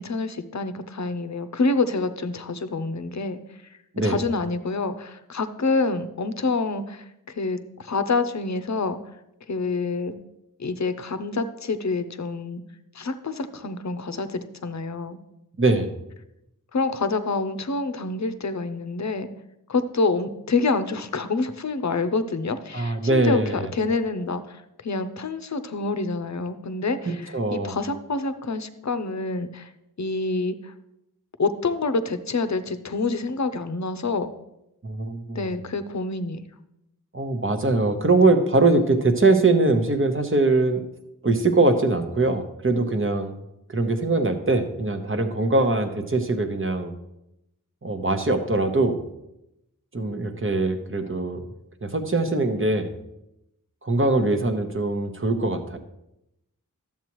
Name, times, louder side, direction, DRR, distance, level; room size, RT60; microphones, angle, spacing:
voice 1, 0.0-3.4 4.0-9.0 9.5-10.2 10.6-12.6 12.9-15.2 16.7-19.3 19.7-29.7 30.0-30.7 31.4-34.3 35.3-36.4, left 3 dB, 55° left, 11 dB, 0.7 m, -27 dB
voice 2, 15.6-15.9 22.7-23.7 27.1-27.7 34.8-35.5 37.1-40.8 41.2-43.4 43.7-46.9 47.8-49.0 49.9-51.4 51.8-52.9 53.8-55.8, right 2 dB, 35° right, 6 dB, 1.0 m, -22 dB
12.0 x 7.3 x 3.1 m, 0.86 s
wide cardioid pair, 45°, 34 cm